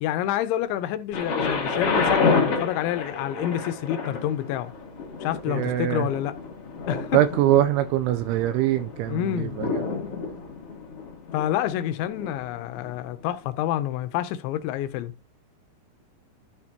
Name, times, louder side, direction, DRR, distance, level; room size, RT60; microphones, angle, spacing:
voice 1, 0.0-4.7 5.2-6.4 6.9-7.2 9.1-9.6 11.3-15.1, left 12 dB, 80° left, 2.9 m, -28 dB
Thunder, 1.1-13.0 13.7-13.8, left 4 dB, 50° left, 1.8 m, -29 dB
voice 2, 5.5-6.1 7.1-9.8, right 13 dB, 85° right, 3.0 m, -23 dB
12.5 x 6.5 x 2.9 m
omnidirectional pair, 5.5 m